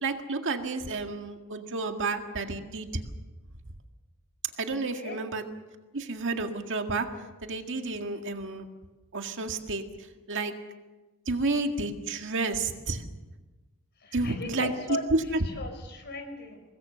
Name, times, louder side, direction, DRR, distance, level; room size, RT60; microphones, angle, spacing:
voice 1, 0.0-3.0 4.6-5.4 5.9-7.1 7.4-8.7 9.1-10.5 11.3-13.0 14.1-15.0, right 3 dB, 60° right, 5 dB, 1.9 m, -31 dB
voice 2, 4.7-5.2 14.0-16.6, left 2 dB, 50° left, 6 dB, 4.6 m, -38 dB
25.0 x 20.0 x 6.9 m, 1.2 s
head